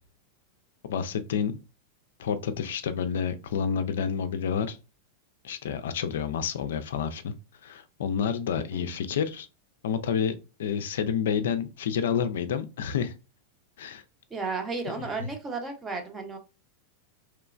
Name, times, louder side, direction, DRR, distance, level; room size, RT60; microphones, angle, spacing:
voice 1, 0.9-1.6 2.2-4.8 5.4-7.3 7.6-9.5 9.8-13.1 13.8-14.0 15.0-15.3, left 7 dB, 75° left, 9 dB, 0.3 m, -29 dB
voice 2, 8.5-8.9 14.3-16.4, right 4 dB, 20° right, 4 dB, 0.8 m, -34 dB
3.0 x 2.1 x 2.4 m, 0.29 s
hypercardioid pair, 105°, 0 cm